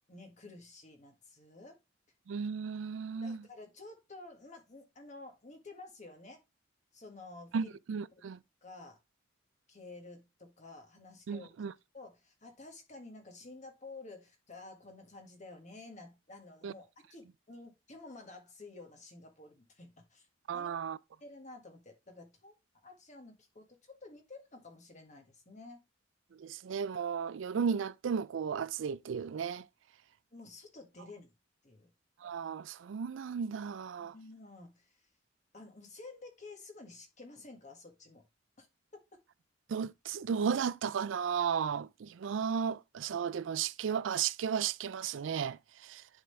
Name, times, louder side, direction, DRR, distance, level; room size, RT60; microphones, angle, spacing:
voice 1, 0.1-1.8 3.2-6.4 6.9-7.7 8.2-8.3 8.6-9.0 9.7-11.5 11.9-20.3 20.5-20.7 21.2-22.5 22.8-23.7 24.0-25.8 30.3-31.3 31.6-31.9 34.0-35.0 35.5-38.2 38.6-38.7, left 2 dB, 40° left, 1.7 m, -51 dB
voice 2, 2.3-3.4 7.5-8.4 11.3-11.7 16.6-16.7 20.5-21.0 26.4-29.7 32.2-34.1 39.7-46.0, right 7 dB, 80° right, 0.4 m, -34 dB
10.0 x 3.8 x 3.3 m
head